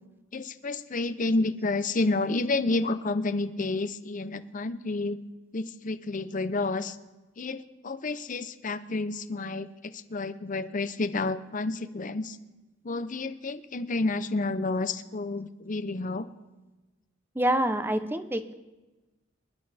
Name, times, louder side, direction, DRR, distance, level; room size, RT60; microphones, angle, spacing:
voice 1, 0.3-5.2 5.5-7.0 7.4-12.4 12.8-16.3, left 3 dB, 40° left, 12 dB, 0.7 m, -30 dB
voice 2, 17.4-18.5, right 1 dB, 10° right, 9 dB, 0.7 m, -26 dB
25.5 x 11.0 x 3.4 m, 1.1 s
head